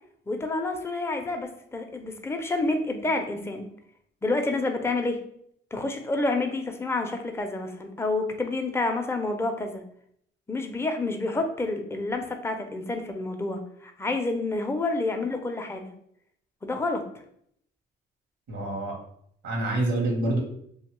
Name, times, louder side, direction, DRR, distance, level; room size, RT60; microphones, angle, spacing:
voice 1, 0.3-3.7 4.2-5.2 5.7-9.8 10.5-15.9 16.6-17.0, left 2 dB, 10° left, 4 dB, 0.4 m, -29 dB
voice 2, 18.5-18.9 19.4-20.4, right 2 dB, 80° right, 0 dB, 0.9 m, -26 dB
2.7 x 2.2 x 2.9 m, 0.68 s
cardioid pair, 90°, 20 cm